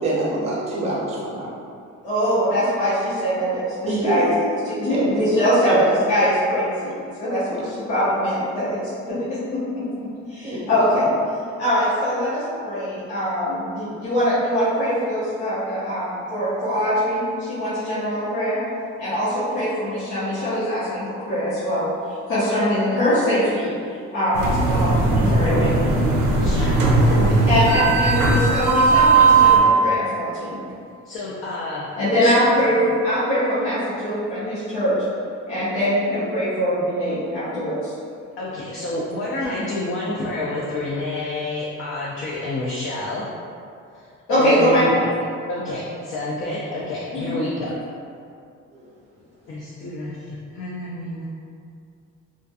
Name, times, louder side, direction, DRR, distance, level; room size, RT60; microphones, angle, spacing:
voice 1, 0.0-1.5 3.9-4.5 4.9-5.3 5.6-5.8 7.5-7.6 10.4-10.9 48.7-48.8, right 2 dB, 20° right, -6 dB, 0.5 m, -25 dB
voice 2, 2.0-4.3 4.6-5.7 6.1-6.9 7.2-8.8 9.1-9.8 10.3-11.0 11.6-17.2 17.5-18.6 19.0-21.9 22.3-23.7 24.1-25.7 27.5-30.6 32.0-34.9 35.5-37.7 44.3-45.0 47.1-47.4, equal, 85° left, -13 dB, 0.9 m, -22 dB
sound 1, 24.3-29.6, right 3 dB, 85° right, 0.5 m, -17 dB
voice 3, 26.4-26.8 27.0-27.3 31.1-31.9 38.4-43.3 43.9-44.9 45.5-47.8 49.5-51.2, left 1 dB, 45° left, -6 dB, 0.4 m, -29 dB
2.4 x 2.2 x 2.6 m, 2.3 s
cardioid pair, 90°, 30 cm